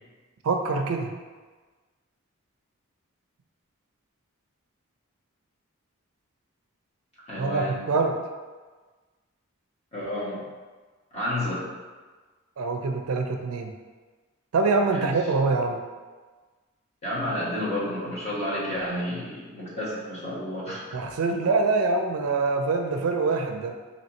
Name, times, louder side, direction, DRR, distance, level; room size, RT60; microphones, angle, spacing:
voice 1, 0.4-1.2 7.4-8.2 12.6-13.7 14.5-15.8 20.9-23.7, right 3 dB, 85° right, 4 dB, 0.4 m, -25 dB
voice 2, 7.3-7.9 9.9-10.4 11.1-11.7 14.9-15.1 17.0-21.0 21.3-21.5, left 1 dB, 30° left, -9 dB, 1.3 m, -31 dB
4.2 x 2.9 x 2.9 m, 1.4 s
head